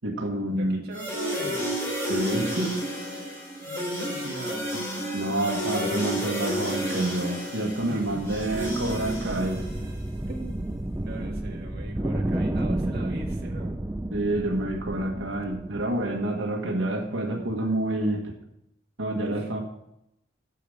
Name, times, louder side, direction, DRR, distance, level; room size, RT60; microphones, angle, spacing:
voice 1, 0.0-0.8 2.1-2.8 5.1-9.7 14.1-18.4 19.0-19.6, right 1 dB, 85° right, 1 dB, 1.5 m, -28 dB
voice 2, 0.5-1.7 3.6-4.8 7.9-8.6 10.3-13.8 19.2-19.5, right 2 dB, 55° right, 0 dB, 1.9 m, -40 dB
sound 1, 0.9-10.0, equal, 15° left, 4.2 m, -31 dB
sound 2, 8.0-16.2, right 1 dB, 10° right, 0.4 m, -32 dB
8.5 x 6.9 x 7.0 m, 0.83 s
head